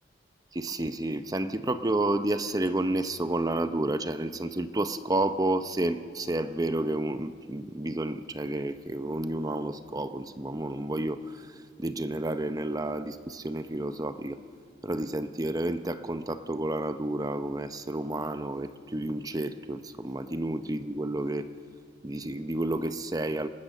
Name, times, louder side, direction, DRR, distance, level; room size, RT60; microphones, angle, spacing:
voice 1, 0.5-14.4 14.8-21.5 22.0-23.5, right 1 dB, 20° right, 10 dB, 0.6 m, -30 dB
29.0 x 18.5 x 6.6 m, 2.2 s
head